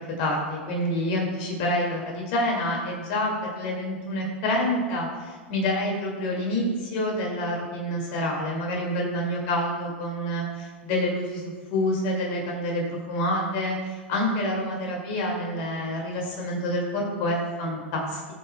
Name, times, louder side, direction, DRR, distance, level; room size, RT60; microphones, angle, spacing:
voice 1, 0.0-18.3, left 1 dB, 50° left, -1 dB, 2.1 m, -27 dB
18.0 x 7.3 x 2.2 m, 1.5 s
figure-of-eight pair, 95°, 6 cm